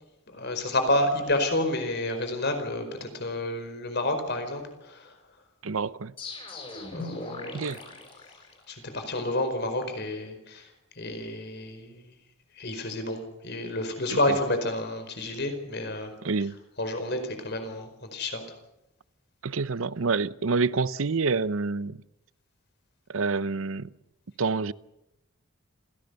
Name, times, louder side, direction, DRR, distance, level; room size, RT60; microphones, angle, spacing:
voice 1, 0.3-5.1 6.9-7.7 8.7-10.7 11.0-12.0 12.5-16.1 16.8-18.4, left 1 dB, 55° left, 4.8 m, -30 dB
voice 2, 5.6-6.1 7.5-7.8 16.2-16.6 19.4-22.0 23.1-23.9 24.4-24.7, right 4 dB, 75° right, 0.7 m, -27 dB
sound 1, 6.2-8.9, left 3 dB, 25° left, 7.7 m, -39 dB
27.0 x 17.0 x 6.9 m
head